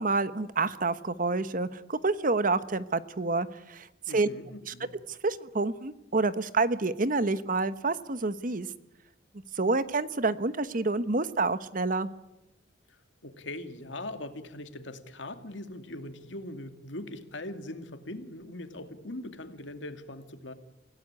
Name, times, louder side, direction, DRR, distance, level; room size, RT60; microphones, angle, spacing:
voice 1, 0.0-3.9 4.1-4.3 4.7-4.8 5.1-8.7 9.6-12.1, right 3 dB, 45° right, 14 dB, 1.1 m, -28 dB
voice 2, 4.1-4.9 12.9-20.5, left 1 dB, 85° left, 8 dB, 2.4 m, -41 dB
25.5 x 17.0 x 9.8 m, 0.92 s
head